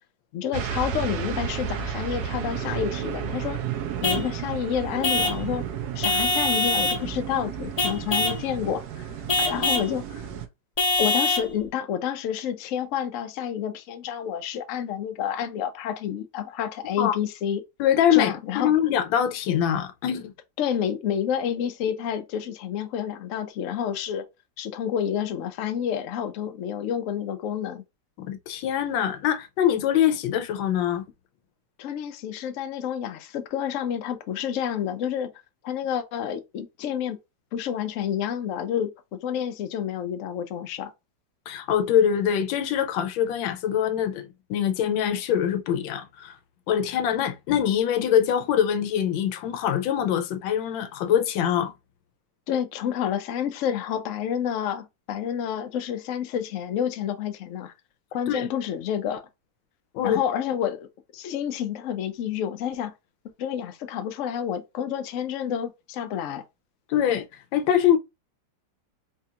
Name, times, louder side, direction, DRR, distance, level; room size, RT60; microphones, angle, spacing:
voice 1, 0.3-3.6 4.0-5.6 5.9-9.0 9.4-10.2 11.0-17.6 18.1-18.7 20.6-24.2 24.6-27.8 31.8-35.3 35.6-37.2 37.5-40.9 52.5-57.7 58.1-59.2 60.0-60.8 61.1-62.9 63.4-66.4, left 9 dB, 70° left, 0.7 m, -29 dB
sound 1, 0.5-10.5, right 8 dB, 70° right, 1.0 m, -32 dB
Vehicle horn car horn honking / Truck, 4.0-4.3 5.0-5.4 6.0-7.0 7.8-8.4 9.3-9.9 10.8-11.5, left 2 dB, 35° left, 0.6 m, -24 dB
voice 2, 17.8-20.3 28.2-31.1 41.5-46.3 46.7-51.7 58.3-58.5 59.9-60.2 66.9-67.2 67.5-68.0, left 9 dB, 90° left, 1.4 m, -23 dB
4.2 x 2.4 x 2.8 m
omnidirectional pair, 2.0 m